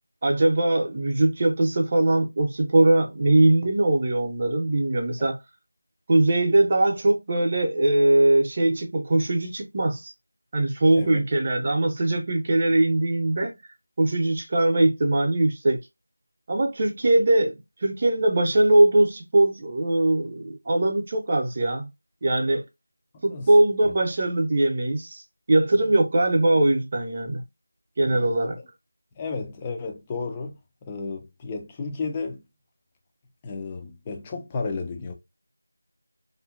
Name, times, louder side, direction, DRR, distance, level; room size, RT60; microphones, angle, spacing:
voice 1, 0.2-5.3 6.1-10.1 10.5-13.5 14.0-15.8 16.5-17.5 17.8-21.9 22.2-22.6 23.2-25.2 25.5-27.4 28.0-28.6, right 2 dB, 30° right, 0.6 m, -21 dB
voice 2, 10.9-11.3 23.1-23.5 23.8-23.9 28.0-28.5 29.2-32.4 33.4-35.1, left 4 dB, 15° left, 0.4 m, -33 dB
2.7 x 2.5 x 2.4 m
figure-of-eight pair, 170°, 0 cm